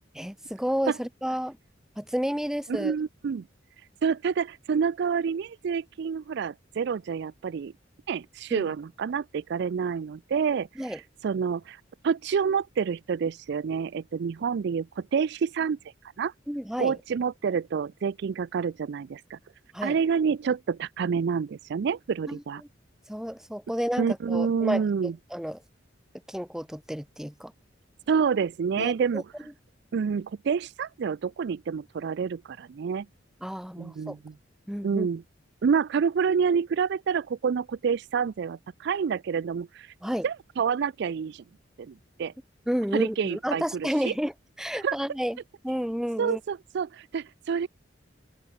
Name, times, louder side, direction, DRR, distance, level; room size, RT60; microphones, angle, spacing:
voice 1, 0.1-1.6 2.0-2.9 8.5-8.7 10.8-11.0 16.5-17.0 19.7-20.0 22.3-22.4 23.1-24.8 25.3-25.6 26.3-27.5 28.8-29.2 33.4-34.1 34.7-35.1 40.0-40.2 42.7-44.3 44.6-45.4 45.6-46.4, equal, 5° right, 1.4 m, -31 dB
voice 2, 2.7-3.4 4.0-7.7 8.1-15.8 16.2-16.3 16.8-19.4 19.8-22.6 24.0-25.1 28.1-29.2 29.9-33.1 33.8-34.3 34.8-35.2 35.6-39.9 40.2-41.4 41.8-42.3 42.9-44.1 44.7-45.0 46.2-47.7, right 6 dB, 60° right, 0.4 m, -28 dB
open air
head